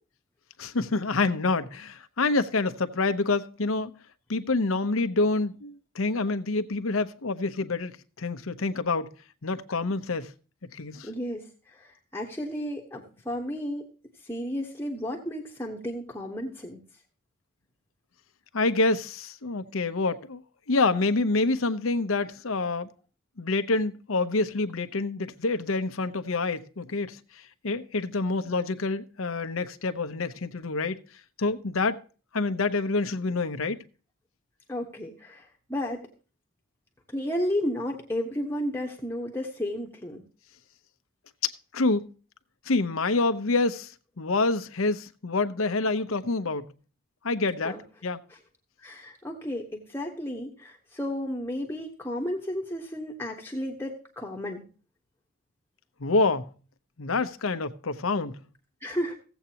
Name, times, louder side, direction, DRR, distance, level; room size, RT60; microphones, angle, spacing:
voice 1, 0.6-3.9 4.3-9.1 9.4-10.3 10.7-11.1 18.5-20.4 20.7-22.9 23.4-27.2 27.6-31.0 31.4-32.0 32.3-33.8 41.4-42.1 42.7-46.7 47.2-48.2 56.0-56.5 57.0-58.4, left 3 dB, 80° left, 0.8 m, -27 dB
voice 2, 11.0-13.8 14.2-16.8 34.7-36.1 37.1-40.2 47.6-47.8 48.8-54.6 58.8-59.2, equal, 10° left, 1.1 m, -33 dB
16.0 x 8.1 x 2.9 m
head